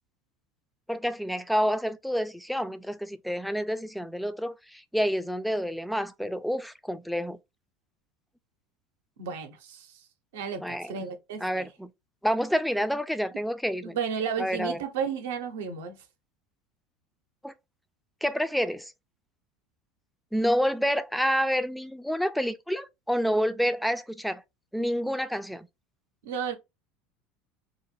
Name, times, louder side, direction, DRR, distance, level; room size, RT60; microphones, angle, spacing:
voice 1, 0.9-7.4 10.6-10.9 11.4-11.9 12.2-14.0 14.4-14.8 17.4-17.5 18.2-18.9 20.3-24.4 24.7-25.7, equal, ahead, 0.3 m, -28 dB
voice 2, 9.2-10.1 10.3-11.7 13.8-16.0 26.2-26.5, right 6 dB, 70° right, 0.6 m, -33 dB
2.5 x 2.1 x 3.0 m
hypercardioid pair, 75°, 0 cm